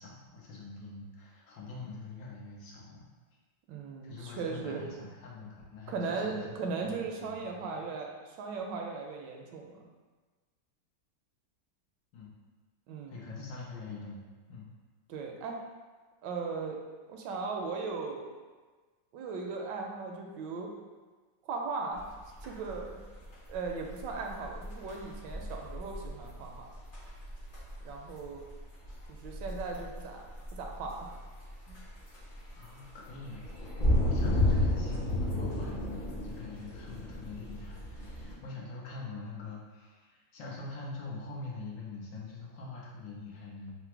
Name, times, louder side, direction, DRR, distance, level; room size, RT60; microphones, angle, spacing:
voice 1, 0.0-3.1 4.0-6.4 6.8-7.9 12.1-12.3 13.1-14.2 14.5-14.7 28.9-29.1 32.6-43.7, left 3 dB, 85° left, -4 dB, 1.5 m, -44 dB
voice 2, 3.7-4.9 5.9-9.8 12.9-13.2 15.1-15.6 16.2-16.8 17.1-18.3 19.1-20.7 21.4-22.0 22.4-23.0 23.5-26.7 27.8-28.4 29.1-31.2 31.7-31.8, right 4 dB, 75° right, 1 dB, 1.2 m, -38 dB
sound 1, 21.9-38.3, left 1 dB, 45° left, 0.6 m, -33 dB
3.8 x 2.0 x 4.4 m, 1.4 s
omnidirectional pair, 2.0 m